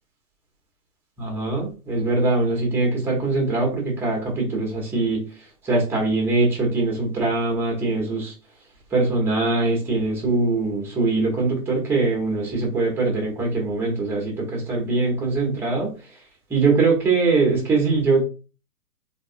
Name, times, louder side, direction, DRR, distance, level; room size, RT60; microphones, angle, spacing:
voice 1, 1.2-5.2 5.6-8.3 8.9-15.9 16.5-18.2, right 3 dB, 5° right, 1 dB, 0.6 m, -22 dB
3.8 x 2.7 x 2.4 m, 0.34 s
hypercardioid pair, 130°, 45 cm